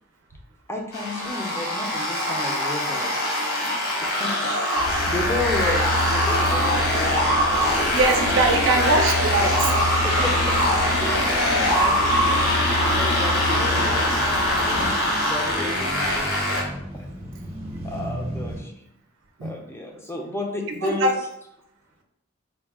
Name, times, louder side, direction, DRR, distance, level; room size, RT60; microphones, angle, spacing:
voice 1, 0.7-3.3 3.6-4.5 5.1-8.1 8.4-8.6 10.0-12.5 12.8-14.2 14.6-16.3 16.9-17.1 17.8-18.7 19.4-21.1, left 2 dB, 10° left, 1 dB, 0.5 m, -33 dB
sound 1, 0.9-16.6, equal, 70° left, 1.2 m, -23 dB
sound 2, 4.8-14.9, left 2 dB, 90° left, 0.7 m, -27 dB
voice 2, 7.9-9.7 11.8-11.9 19.4-19.5 20.8-21.2, right 2 dB, 60° right, 3 dB, 0.5 m, -22 dB
sound 3, 8.9-18.6, equal, 30° right, 0.8 m, -37 dB
4.0 x 2.2 x 3.5 m, 0.79 s
head